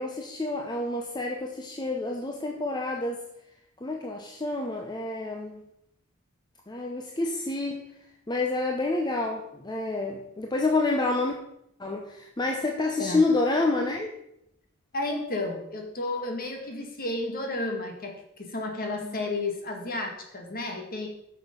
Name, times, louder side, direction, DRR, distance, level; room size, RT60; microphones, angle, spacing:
voice 1, 0.0-3.2 3.8-5.6 6.7-7.9 8.3-11.4 11.8-14.1 19.0-19.2, left 2 dB, 20° left, 2 dB, 0.7 m, -28 dB
voice 2, 14.9-21.1, left 2 dB, 40° left, 2 dB, 1.8 m, -32 dB
8.4 x 6.5 x 5.2 m, 0.79 s
head